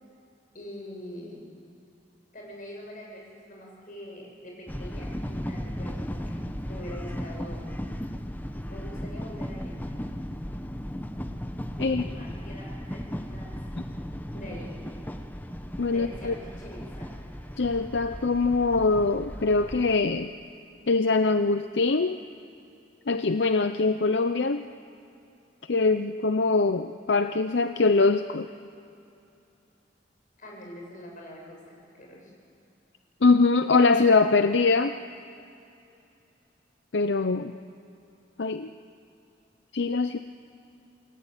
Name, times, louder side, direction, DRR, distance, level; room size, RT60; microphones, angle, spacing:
voice 1, 0.5-1.4 2.3-6.4 6.7-7.6 8.7-9.7 11.8-13.5 14.3-14.7 15.9-17.1 30.4-32.3, left 1 dB, 50° left, -1 dB, 7.4 m, -44 dB
sound 1, 4.7-20.0, equal, 10° left, 1.1 m, -36 dB
voice 2, 15.8-16.3 17.6-20.3 20.9-22.2 23.1-24.7 25.7-28.5 33.2-35.0 36.9-37.5 38.4-38.7 39.7-40.2, left 3 dB, 80° left, 9 dB, 0.7 m, -23 dB
27.5 x 20.0 x 9.1 m, 2.6 s
head